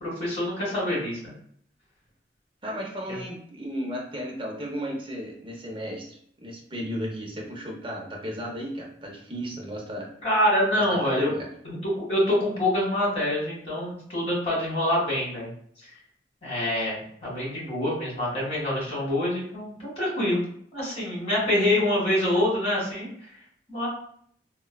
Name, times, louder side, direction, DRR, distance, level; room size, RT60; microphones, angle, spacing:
voice 1, 0.0-1.3 3.1-3.2 10.2-11.3 11.6-15.5 16.4-17.0 17.2-20.4 20.7-23.1 23.7-23.9, left 1 dB, 35° left, -5 dB, 1.4 m, -25 dB
voice 2, 2.6-10.1 10.7-11.5, equal, 25° right, -2 dB, 0.6 m, -34 dB
3.2 x 2.2 x 2.2 m, 0.64 s
head